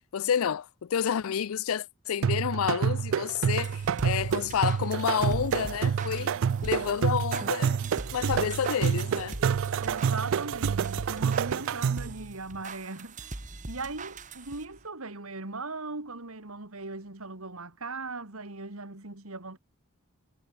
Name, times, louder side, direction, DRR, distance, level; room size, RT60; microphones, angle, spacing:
voice 1, 0.0-6.3 6.6-7.8 8.1-9.4, left 8 dB, 80° left, 0.4 m, -29 dB
sound 1, 2.2-12.2, right 7 dB, 65° right, 0.3 m, -28 dB
sound 2, 3.5-14.9, right 2 dB, 35° right, 1.9 m, -43 dB
voice 2, 9.8-13.4 13.7-19.6, right 3 dB, 85° right, 2.7 m, -39 dB
head